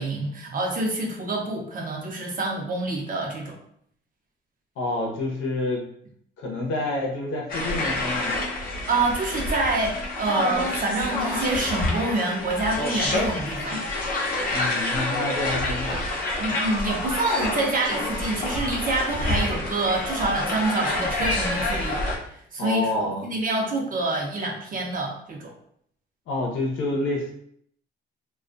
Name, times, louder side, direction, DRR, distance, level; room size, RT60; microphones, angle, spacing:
voice 1, 0.0-3.6 8.9-13.8 16.4-22.0 22.5-25.5, right 2 dB, 45° right, 0 dB, 0.7 m, -27 dB
voice 2, 4.8-5.8 6.4-8.5 14.5-16.1 22.6-23.3 26.3-27.3, left 2 dB, 80° left, 0 dB, 0.7 m, -28 dB
sound 1, 7.5-22.2, left 2 dB, 45° left, 0.7 m, -28 dB
2.3 x 2.2 x 2.5 m, 0.66 s
cardioid pair, 90°, 20 cm